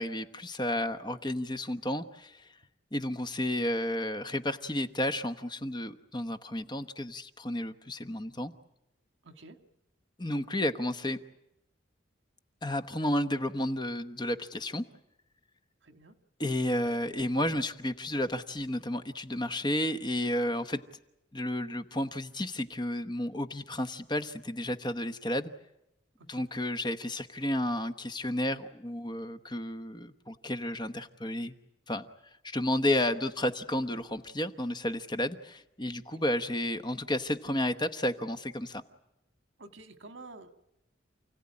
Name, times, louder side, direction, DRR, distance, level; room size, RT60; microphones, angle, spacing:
voice 1, 0.0-2.5 2.9-8.5 10.2-11.2 12.6-14.8 16.4-20.8 21.3-25.5 26.3-31.5 31.9-32.0 32.4-38.8, left 1 dB, 20° left, 9 dB, 1.0 m, -32 dB
voice 2, 9.2-9.6 15.8-16.2 26.2-26.5 39.6-40.5, right 2 dB, 70° right, 8 dB, 1.9 m, -50 dB
29.5 x 16.5 x 9.8 m, 0.88 s
head